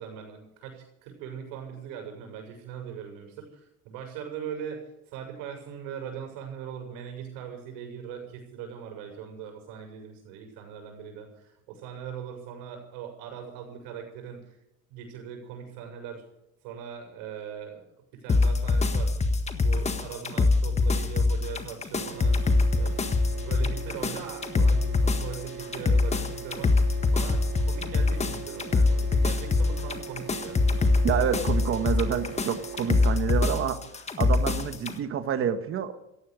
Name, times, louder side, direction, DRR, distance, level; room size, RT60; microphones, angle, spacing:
voice 1, 0.0-14.6 14.9-16.2 16.6-17.8 18.1-19.3 19.6-30.6, right 8 dB, 80° right, 2 dB, 6.7 m, -40 dB
sound 1, 18.3-35.0, left 3 dB, 20° left, 1.5 m, -24 dB
sound 2, 22.0-33.2, right 5 dB, 55° right, 5.1 m, -41 dB
voice 2, 31.0-33.8 34.2-36.0, right 8 dB, 40° right, 9 dB, 1.6 m, -28 dB
17.0 x 14.5 x 5.2 m, 0.86 s
cardioid pair, 135°, 33 cm